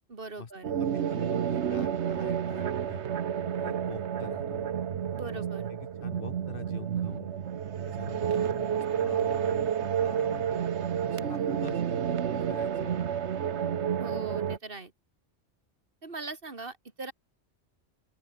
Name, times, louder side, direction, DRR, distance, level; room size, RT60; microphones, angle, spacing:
voice 1, 0.1-0.7 5.1-5.7 14.0-14.9 16.0-17.1, right 3 dB, 55° right, 2.5 m, -40 dB
sound 1, 0.6-14.6, right 8 dB, 80° right, 1.2 m, -30 dB
voice 2, 0.8-3.0 3.6-4.7 5.3-5.4 5.7-7.3 7.8-10.6 11.1-13.0, left 5 dB, 55° left, 1.5 m, -45 dB
open air
omnidirectional pair, 1.1 m